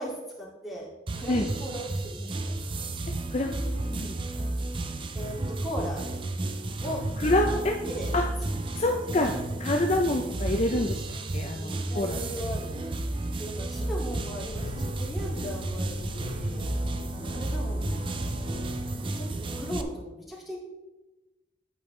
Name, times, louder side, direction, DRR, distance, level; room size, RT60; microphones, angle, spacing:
voice 1, 0.0-2.5 5.1-6.1 6.8-7.0 7.4-8.1 8.8-9.1 11.5-16.7 17.1-18.6 19.0-20.6, equal, ahead, -5 dB, 2.4 m, -38 dB
sound 1, 1.1-19.8, right 2 dB, 30° right, 0.5 m, -32 dB
voice 2, 3.3-4.2 7.2-7.8 8.1-8.2 8.7-9.3 9.6-11.0 11.3-12.2, left 1 dB, 40° left, 2 dB, 0.6 m, -26 dB
sound 2, 14.0-19.0, left 3 dB, 85° left, 0.5 m, -42 dB
8.9 x 8.2 x 3.3 m, 1.1 s
head